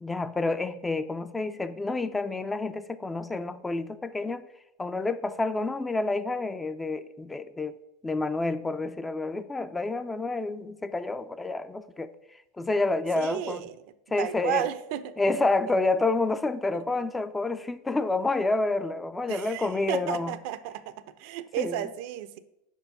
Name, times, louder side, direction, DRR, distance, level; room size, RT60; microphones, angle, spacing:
voice 1, 0.0-4.5 4.8-7.7 8.0-12.1 12.6-13.7 14.1-14.7 15.2-20.3 21.6-21.9, left 3 dB, 10° left, 12 dB, 0.3 m, -29 dB
voice 2, 13.2-13.7 14.2-15.4 19.3-22.4, right 11 dB, 55° right, 13 dB, 0.4 m, -33 dB
5.0 x 4.5 x 5.6 m, 0.89 s
hypercardioid pair, 90°, 0 cm